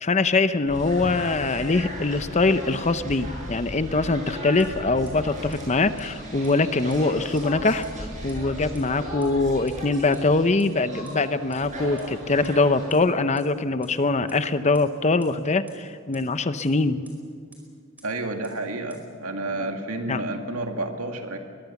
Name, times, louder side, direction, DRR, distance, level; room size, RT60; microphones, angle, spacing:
voice 1, 0.0-7.8 8.2-17.1 20.1-20.2, left 3 dB, 35° left, 12 dB, 0.7 m, -23 dB
sound 1, 0.7-12.9, equal, 35° right, 7.7 m, -37 dB
sound 2, 4.6-4.7 5.1-5.2 5.5-5.6 6.0-6.1 6.4-6.5 6.9-7.0 7.4-7.5 7.8-7.9 8.3-8.4 8.7-8.8 9.2-9.3 9.7-9.8 10.1-10.2 10.6-10.7 11.1-11.2 11.5-11.6 12.0-12.1 12.4-12.5 12.9-13.0 13.4-13.5 13.8-13.9 14.3-14.4 14.7-14.8 15.2-15.3 15.7-15.8 16.1-16.2 16.6-16.7 17.0-17.1 17.5-17.6 18.0-18.1 18.4-18.5 18.9-19.0, right 2 dB, 10° right, 4.8 m, -50 dB
voice 2, 18.0-21.4, right 2 dB, 85° right, 4 dB, 2.1 m, -30 dB
22.5 x 22.0 x 7.2 m, 2.2 s
head